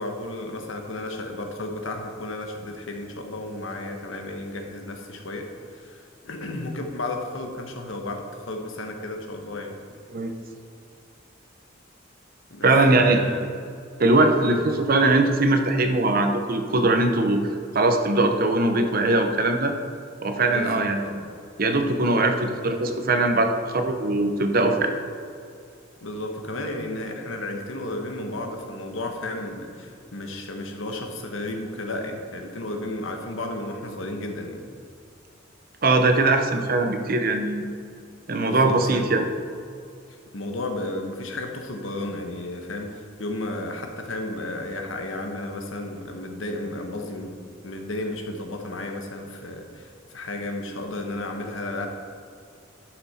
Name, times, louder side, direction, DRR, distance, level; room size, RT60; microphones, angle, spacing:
voice 1, 0.0-9.7 12.5-13.4 14.4-14.6 20.5-21.2 26.0-34.6 38.3-39.3 40.3-47.4 47.6-51.9, left 2 dB, 80° left, 3 dB, 1.2 m, -33 dB
voice 2, 12.6-13.2 14.0-17.4 17.7-19.7 20.2-21.2 21.6-24.9 35.8-37.6 38.3-39.3, right 2 dB, 45° right, 5 dB, 0.8 m, -21 dB
11.5 x 6.0 x 4.2 m, 2.4 s
head